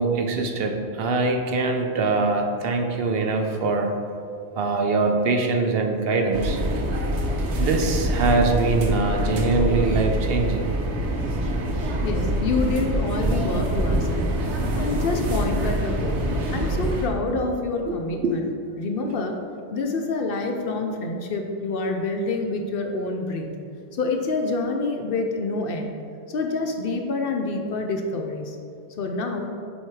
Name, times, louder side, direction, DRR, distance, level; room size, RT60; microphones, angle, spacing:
voice 1, 0.0-3.9 4.6-6.6 7.6-10.7 17.9-18.0 18.2-18.4, right 3 dB, 65° right, 3 dB, 0.8 m, -23 dB
sound 1, 6.3-17.1, right 1 dB, 85° right, 1.1 m, -25 dB
voice 2, 12.0-14.4 14.7-16.2 16.5-18.4 18.8-19.4 19.7-23.5 23.9-25.9 26.3-28.6 29.0-29.5, left 3 dB, 65° left, 3 dB, 0.7 m, -27 dB
7.3 x 2.8 x 4.6 m, 2.4 s
omnidirectional pair, 1.1 m